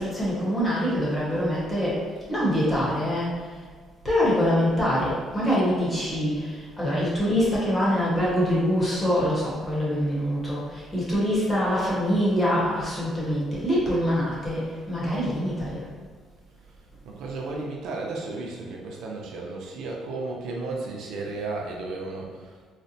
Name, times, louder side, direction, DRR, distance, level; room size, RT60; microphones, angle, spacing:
voice 1, 0.0-2.0 2.3-3.4 4.0-15.8, equal, 15° left, -8 dB, 1.0 m, -24 dB
voice 2, 17.0-22.7, right 3 dB, 75° right, -1 dB, 0.5 m, -34 dB
4.1 x 2.1 x 2.7 m, 1.5 s
cardioid pair, 155°, 0 cm